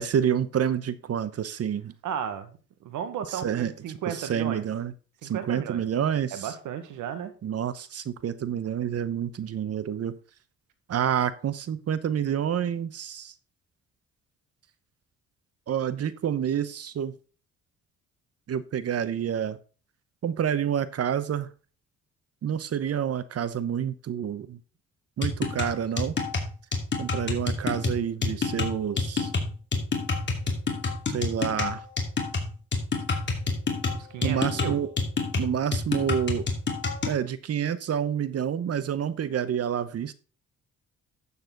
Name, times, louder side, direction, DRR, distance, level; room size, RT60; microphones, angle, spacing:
voice 1, 0.0-1.9 3.3-3.7 4.1-4.9 5.2-6.5 7.4-10.1 10.9-13.3 15.7-17.1 18.5-19.6 20.2-21.5 22.4-24.6 25.2-26.2 27.0-29.3 31.1-31.8 34.2-34.9 35.4-36.4 37.0-40.1, right 9 dB, 55° right, 15 dB, 1.1 m, -28 dB
voice 2, 2.0-4.7 5.2-5.8 6.3-7.3 33.9-34.8, right 8 dB, 85° right, 9 dB, 1.8 m, -34 dB
sound 1, 25.2-37.2, left 4 dB, 40° left, 2.7 m, -28 dB
12.5 x 7.1 x 4.0 m, 0.36 s
cardioid pair, 90°, 30 cm